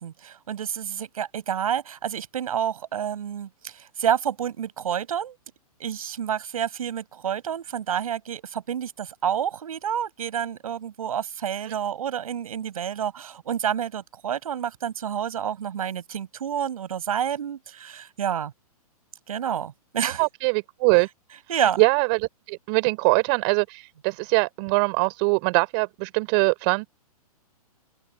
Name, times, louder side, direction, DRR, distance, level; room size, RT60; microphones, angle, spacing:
voice 1, 0.0-5.4 5.8-18.5 19.3-20.2 21.5-21.8, right 9 dB, 65° right, 7.3 m, -29 dB
voice 2, 20.0-21.1 21.5-26.9, right 34 dB, 40° right, 3.9 m, -23 dB
open air
figure-of-eight pair, 120°, 20 cm